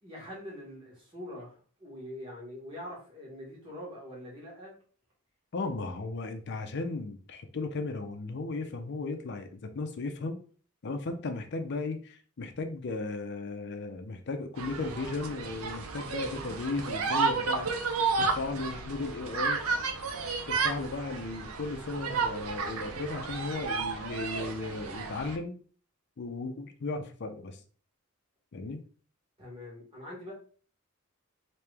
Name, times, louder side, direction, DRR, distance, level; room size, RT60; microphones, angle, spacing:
voice 1, 0.0-4.8 29.4-30.3, left 1 dB, 25° right, -4 dB, 1.5 m, -44 dB
voice 2, 5.5-10.4 10.8-17.9 18.2-19.6 20.5-25.5 26.2-27.6 28.5-28.8, left 3 dB, 55° left, 6 dB, 0.5 m, -35 dB
sound 1, 14.6-25.4, right 4 dB, 85° right, 0.6 m, -32 dB
3.1 x 2.8 x 3.4 m, 0.41 s
head